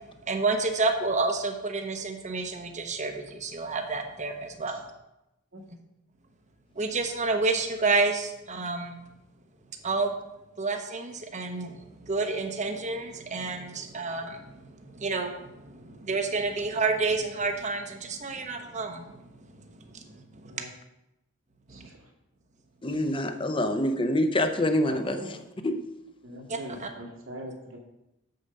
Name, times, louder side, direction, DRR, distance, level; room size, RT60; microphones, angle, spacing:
voice 1, 0.3-4.8 6.8-9.0 9.8-10.1 10.6-19.6 19.9-20.6 21.7-21.9 26.5-26.9, right 3 dB, 35° right, 5 dB, 0.9 m, -30 dB
voice 2, 21.7-22.1 24.9-25.3 26.2-27.8, equal, 75° right, 0 dB, 2.0 m, -41 dB
voice 3, 22.8-25.4 25.6-25.8, left 1 dB, 25° left, 8 dB, 0.7 m, -26 dB
7.2 x 6.6 x 5.3 m, 0.90 s
head